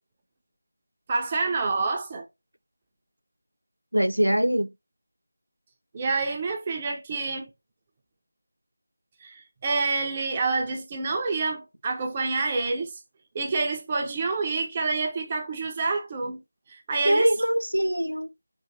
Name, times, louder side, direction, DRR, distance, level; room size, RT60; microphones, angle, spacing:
voice 1, 1.1-2.2 5.9-7.5 9.2-12.9 13.3-16.4 16.7-17.3, right 3 dB, 20° right, 0.7 m, -27 dB
voice 2, 3.9-4.7 17.0-18.3, equal, 80° right, 0.5 m, -23 dB
4.6 x 2.5 x 3.8 m
figure-of-eight pair, 165°, 0 cm